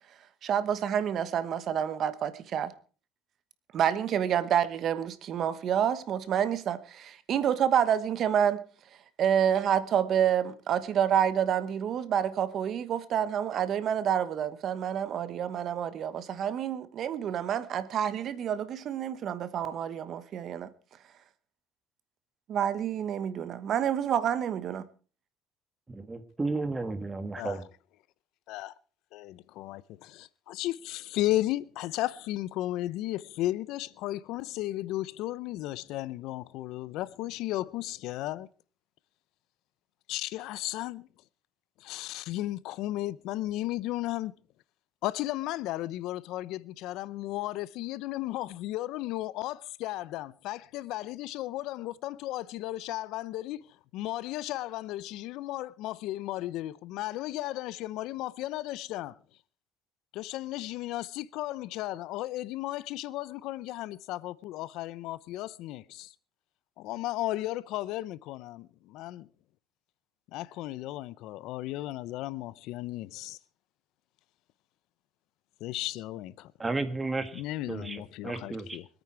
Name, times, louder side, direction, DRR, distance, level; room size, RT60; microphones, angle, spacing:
voice 1, 0.4-2.7 3.7-8.6 9.2-20.7 22.5-24.8, right 9 dB, 50° right, 1.2 m, -28 dB
voice 2, 25.9-27.6 76.6-77.4 77.7-78.8, right 3 dB, 15° right, 1.8 m, -33 dB
voice 3, 29.1-38.5 40.1-41.1 41.8-44.4 45.0-53.6 53.9-59.2 60.1-66.1 66.8-69.3 70.3-73.4 75.6-76.5 77.3-78.9, left 16 dB, 70° left, 0.6 m, -34 dB
24.5 x 9.1 x 4.6 m
cardioid pair, 120°, 0 cm